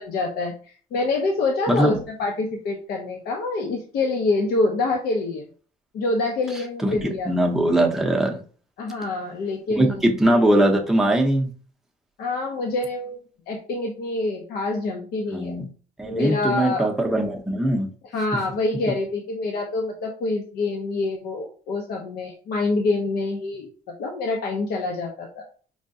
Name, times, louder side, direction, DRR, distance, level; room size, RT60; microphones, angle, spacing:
voice 1, 0.0-5.4 5.9-7.5 8.8-10.0 12.2-13.2 13.5-15.6 16.1-16.9 18.1-23.7 24.0-25.4, left 3 dB, 65° left, 1 dB, 0.6 m, -26 dB
voice 2, 1.7-2.0 6.8-8.4 9.8-11.5 15.3-15.7 16.0-17.9, right 1 dB, ahead, 1 dB, 0.6 m, -21 dB
4.7 x 2.2 x 2.6 m, 0.41 s
cardioid pair, 110°, 17 cm